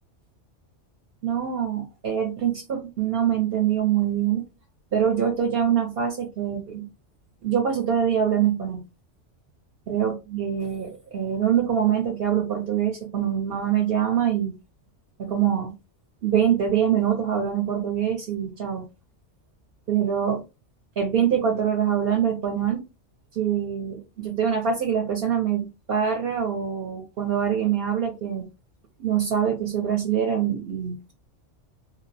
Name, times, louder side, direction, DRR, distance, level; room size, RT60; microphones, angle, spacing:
voice 1, 1.2-4.4 4.9-6.9 7.4-8.8 9.9-14.5 15.2-15.7 16.2-18.9 19.9-20.4 21.0-22.8 23.3-28.5 29.0-31.1, right 8 dB, 60° right, 0.8 m, -24 dB
2.3 x 2.0 x 2.6 m
omnidirectional pair, 1.2 m